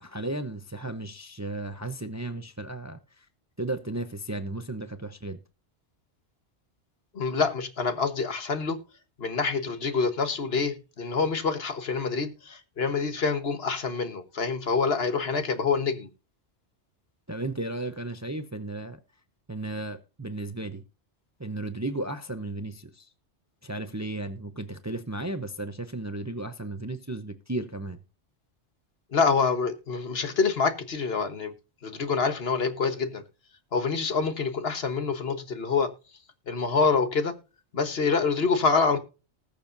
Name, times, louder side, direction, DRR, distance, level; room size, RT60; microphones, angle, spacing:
voice 1, 0.0-3.0 3.6-5.4 17.3-19.0 19.5-20.8 21.4-23.1 23.6-28.0, right 2 dB, 20° right, 0.6 m, -34 dB
voice 2, 7.1-8.8 9.2-16.1 29.1-31.5 31.8-33.2 33.7-35.9 36.5-37.3 37.7-39.0, left 5 dB, 65° left, 1.5 m, -26 dB
20.0 x 6.9 x 2.6 m
omnidirectional pair, 1.1 m